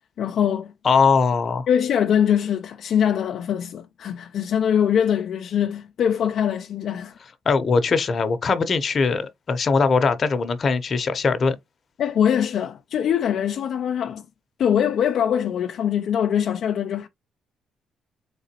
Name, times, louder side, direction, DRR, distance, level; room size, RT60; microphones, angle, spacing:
voice 1, 0.2-0.7 1.7-7.2 12.0-14.2 14.6-17.1, left 9 dB, 65° left, 0.4 m, -22 dB
voice 2, 0.8-1.7 7.5-11.6, left 4 dB, 45° left, 0.8 m, -21 dB
3.8 x 3.8 x 2.9 m
cardioid pair, 90°, 0 cm